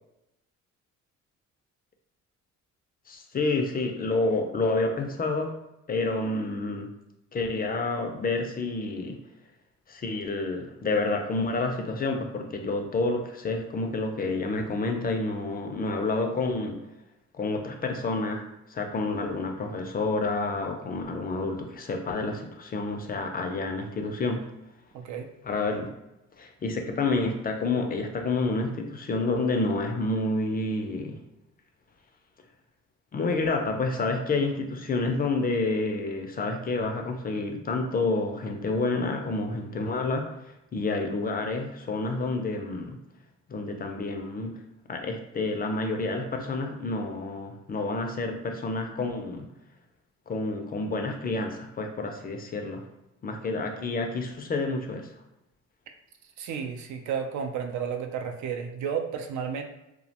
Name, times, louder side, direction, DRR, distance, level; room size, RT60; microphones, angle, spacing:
voice 1, 3.1-5.5 5.9-6.9 7.3-9.2 9.9-16.8 17.3-24.5 25.4-25.9 26.4-31.2 33.1-43.0 43.5-44.6 44.9-49.5 50.3-52.8 53.2-55.1, left 3 dB, 30° left, 4 dB, 0.4 m, -29 dB
voice 2, 24.9-25.3 56.4-59.6, right 7 dB, 70° right, 5 dB, 0.5 m, -32 dB
2.3 x 2.1 x 2.7 m, 0.89 s
cardioid pair, 90°, 30 cm